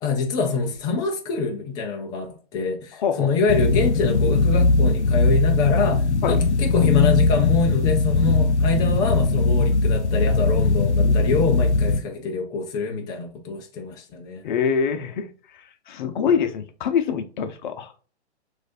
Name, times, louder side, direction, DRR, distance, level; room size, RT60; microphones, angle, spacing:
voice 1, 0.0-14.4, left 4 dB, 10° left, 0.4 m, -25 dB
voice 2, 3.0-3.3 6.2-6.4 14.4-15.3 15.9-17.9, left 7 dB, 45° left, 0.7 m, -24 dB
sound 1, 3.5-12.0, left 3 dB, 80° left, 0.7 m, -19 dB
6.1 x 2.6 x 2.6 m
hypercardioid pair, 130°, 34 cm